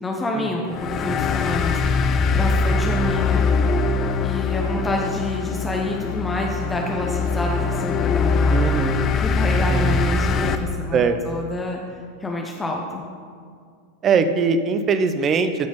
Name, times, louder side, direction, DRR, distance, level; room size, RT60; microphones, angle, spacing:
voice 1, 0.0-2.0 2.3-3.4 4.2-8.6 9.2-13.0, left 2 dB, 10° left, 0 dB, 1.0 m, -28 dB
sound 1, 0.7-10.6, left 4 dB, 30° left, 0.6 m, -22 dB
voice 2, 8.5-9.1 9.7-9.9 10.9-11.2 14.0-15.7, right 5 dB, 30° right, 10 dB, 0.7 m, -21 dB
13.0 x 5.1 x 5.3 m, 2.1 s
figure-of-eight pair, 90°, 0 cm